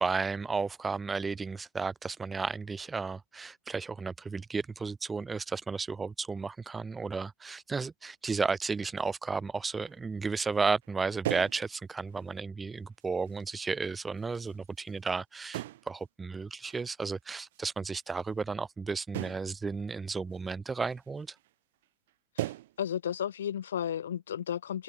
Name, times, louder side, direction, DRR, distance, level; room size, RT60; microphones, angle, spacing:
voice 1, 0.0-21.3, right 4 dB, 15° right, 3.4 m, -33 dB
sound 1, 9.9-10.0 10.2-10.4 10.8-10.9 11.2-11.7 12.1-12.2 13.0-13.4 14.1-15.1 15.5-16.0 16.6-16.8 17.5-17.6 19.1-19.5 20.3-20.4 20.9-21.1 21.4-21.5 21.8-22.1 22.4-22.8, right 16 dB, 55° right, 1.6 m, -37 dB
voice 2, 22.8-24.8, left 9 dB, 65° left, 1.5 m, -33 dB
figure-of-eight pair, 90°, 0 cm